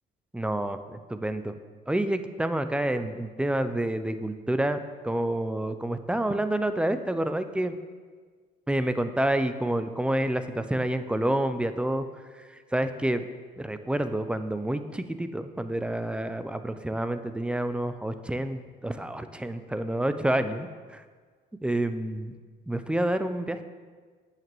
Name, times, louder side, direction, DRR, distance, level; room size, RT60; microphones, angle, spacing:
voice 1, 0.3-1.5 1.9-7.7 8.7-12.0 12.3-13.3 13.6-21.0 21.6-22.4 22.7-23.6, right 1 dB, 5° right, 10 dB, 0.3 m, -28 dB
7.5 x 7.4 x 3.1 m, 1.5 s
cardioid pair, 110°, 17 cm